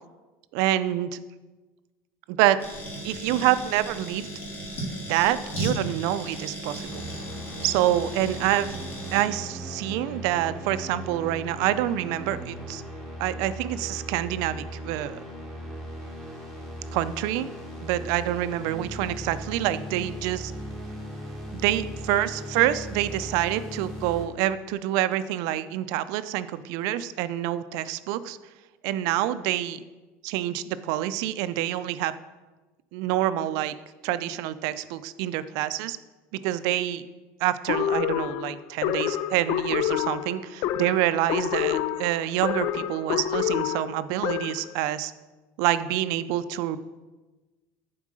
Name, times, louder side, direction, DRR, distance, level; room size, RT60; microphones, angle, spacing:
voice 1, 0.5-1.2 2.3-2.6 3.0-4.3 5.1-7.0 7.6-8.7 9.1-12.8 13.2-15.2 16.9-17.5 17.8-20.5 21.5-28.4 28.8-29.8 30.2-32.1 32.9-33.7 34.0-36.0 36.3-37.0 37.4-45.1 45.6-46.8, right 13 dB, 75° right, 14 dB, 0.4 m, -27 dB
sound 1, 2.6-9.2, right 1 dB, 35° left, 2.4 m, -36 dB
sound 2, 6.8-24.3, equal, 5° left, 1.5 m, -38 dB
sound 3, 37.7-44.7, left 11 dB, 60° left, 0.3 m, -28 dB
7.4 x 4.6 x 6.2 m, 1.2 s
cardioid pair, 150°, 6 cm